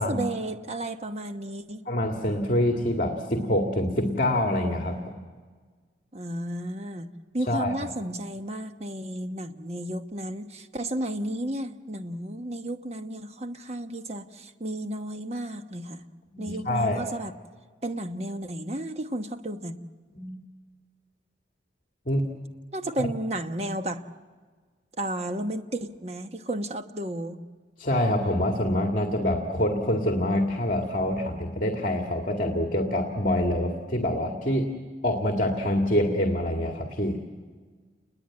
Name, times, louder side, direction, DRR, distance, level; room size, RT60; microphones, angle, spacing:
voice 1, 0.0-1.8 6.1-7.1 7.3-16.0 16.4-17.3 17.8-19.8 22.7-24.0 25.0-27.4, right 1 dB, 35° right, 7 dB, 1.1 m, -33 dB
voice 2, 1.9-5.1 7.5-7.7 16.3-17.0 20.1-20.4 22.1-22.2 23.0-23.1 27.8-34.7 35.0-37.2, left 1 dB, 45° left, 3 dB, 2.1 m, -26 dB
29.0 x 21.0 x 8.8 m, 1.5 s
head